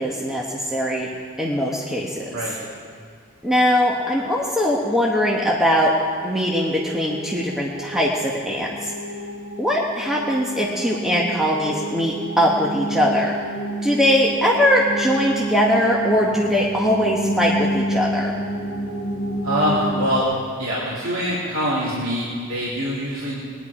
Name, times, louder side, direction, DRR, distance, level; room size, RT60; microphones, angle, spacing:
voice 1, 0.0-2.3 3.4-5.9 6.2-8.9 9.6-13.4 13.8-18.4, equal, ahead, -4 dB, 1.1 m, -21 dB
sound 1, 5.7-20.2, right 1 dB, 85° left, 1.1 m, -30 dB
voice 2, 19.4-20.2 20.6-23.3, equal, 70° right, -8 dB, 3.1 m, -24 dB
20.5 x 10.0 x 4.9 m, 2.1 s
head